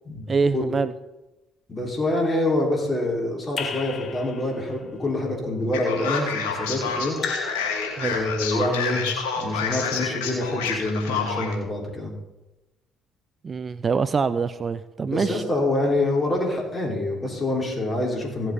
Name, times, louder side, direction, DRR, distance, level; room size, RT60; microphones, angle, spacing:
voice 1, 0.3-0.9 8.0-8.2 13.4-15.4, right 5 dB, 40° right, 15 dB, 0.5 m, -24 dB
voice 2, 1.7-7.2 8.1-9.0 9.3-12.1 15.1-18.5, left 1 dB, 25° left, -2 dB, 5.0 m, -26 dB
Raindrop / Drip, 3.6-4.8 7.2-8.5, left 5 dB, 50° left, 1.4 m, -33 dB
Male speech man speaking, 5.7-11.5, left 5 dB, 80° left, 2.5 m, -28 dB
16.5 x 7.6 x 4.2 m, 1.0 s
hypercardioid pair, 50°, 0 cm